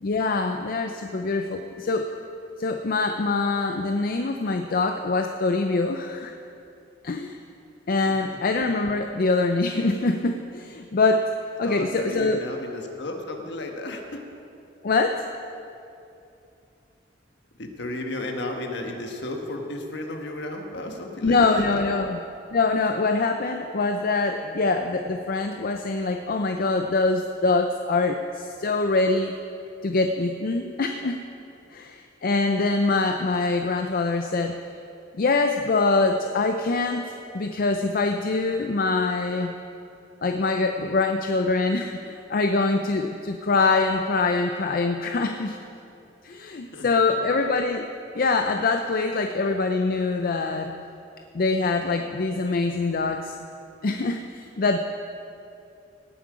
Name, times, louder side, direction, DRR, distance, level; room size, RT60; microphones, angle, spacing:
voice 1, 0.0-2.1 2.6-6.3 7.0-7.4 7.9-11.3 11.6-12.4 14.8-15.2 21.2-22.2 22.5-29.4 29.8-31.2 31.7-34.6 35.2-37.0 37.3-39.5 40.2-45.6 46.2-47.9 48.1-50.7 51.3-53.4 53.8-54.8, left 3 dB, 50° left, 5 dB, 0.5 m, -24 dB
voice 2, 11.6-14.2 17.6-21.8 24.4-24.5 46.7-47.2, left 1 dB, 65° left, 3 dB, 1.3 m, -34 dB
17.5 x 7.6 x 4.9 m, 2.7 s
head